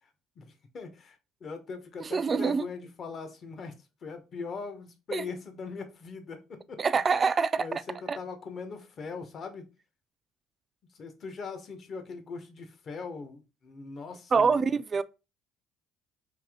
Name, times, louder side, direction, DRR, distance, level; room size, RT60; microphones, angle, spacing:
voice 1, 0.4-3.7 4.0-6.8 7.6-9.7 10.9-14.8, left 4 dB, 50° left, 0.9 m, -40 dB
voice 2, 2.0-2.7 5.1-5.3 6.8-7.7 8.1-8.2 14.3-15.0, right 5 dB, 35° right, 0.3 m, -25 dB
3.4 x 2.7 x 3.5 m
supercardioid pair, 80°, 0 cm